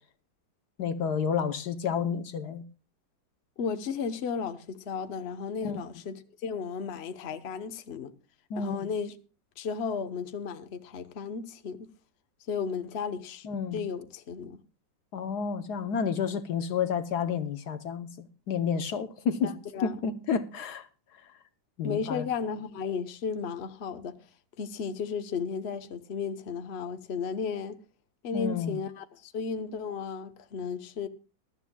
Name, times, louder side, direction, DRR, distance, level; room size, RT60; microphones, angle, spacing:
voice 1, 0.8-2.6 5.6-5.8 8.5-8.8 13.4-13.8 15.1-19.5 19.8-20.9 21.8-22.2 28.3-28.8, left 6 dB, 65° left, 1.3 m, -30 dB
voice 2, 3.6-8.1 8.6-9.2 9.6-11.9 12.5-13.5 13.7-14.6 19.4-20.0 21.8-24.2 24.6-27.8 28.2-31.1, left 6 dB, 40° left, 1.0 m, -34 dB
21.5 x 12.5 x 2.3 m
omnidirectional pair, 2.0 m